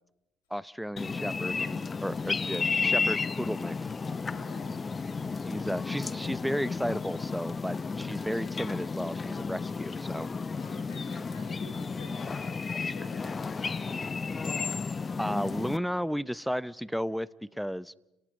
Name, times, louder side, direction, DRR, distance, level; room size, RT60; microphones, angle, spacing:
voice 1, 0.5-3.8 5.4-10.3 15.2-18.0, equal, ahead, 19 dB, 0.8 m, -33 dB
sound 1, 1.0-15.8, left 4 dB, 30° left, 0.8 m, -33 dB
voice 2, 4.3-5.0 10.6-14.1, left 3 dB, 90° left, 4 dB, 6.8 m, -51 dB
30.0 x 19.0 x 5.3 m, 0.92 s
hypercardioid pair, 70°, 0 cm